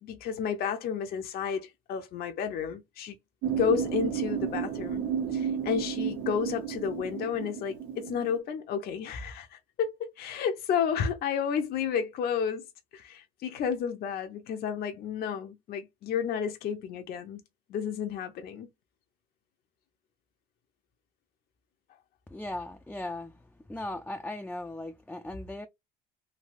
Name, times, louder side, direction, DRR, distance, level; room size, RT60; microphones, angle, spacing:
voice 1, 0.0-3.2 3.5-5.0 5.3-12.6 12.9-17.4 17.7-18.7, left 7 dB, 50° left, 0.6 m, -31 dB
sound 1, 3.4-8.4, right 7 dB, 80° right, 0.8 m, -32 dB
voice 2, 22.3-23.4 23.7-25.7, left 1 dB, 5° left, 0.4 m, -38 dB
3.2 x 2.7 x 2.4 m
supercardioid pair, 90°, 20 cm